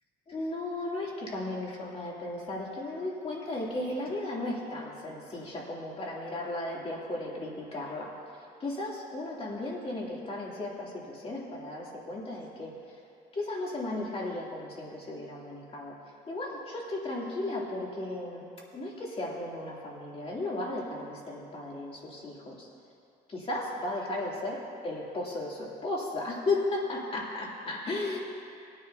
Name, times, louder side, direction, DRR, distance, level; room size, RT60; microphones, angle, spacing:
voice 1, 0.3-8.1 8.6-12.7 13.3-16.0 16.3-18.5 18.7-22.7 23.3-24.6 24.8-28.2, left 2 dB, 35° left, -4 dB, 3.0 m, -35 dB
19.5 x 9.9 x 2.8 m, 2.5 s
cardioid pair, 110°, 17 cm